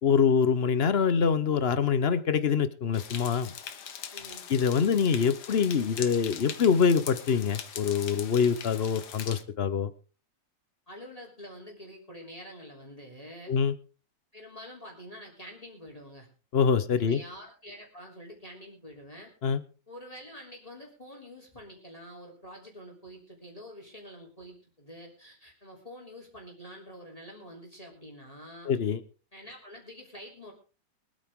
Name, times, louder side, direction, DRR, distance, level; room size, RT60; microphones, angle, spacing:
voice 1, 0.0-3.5 4.5-9.9 13.5-13.7 16.5-17.2 19.4-19.6 28.7-29.0, left 6 dB, 45° left, 14 dB, 0.9 m, -25 dB
sound 1, 2.9-9.4, left 8 dB, 70° left, 1.7 m, -41 dB
voice 2, 4.1-4.5 10.9-13.5 14.3-16.3 17.0-19.3 19.9-28.7 29.3-30.5, equal, 20° left, 0 dB, 3.4 m, -47 dB
23.0 x 9.0 x 3.7 m, 0.35 s
omnidirectional pair, 1.8 m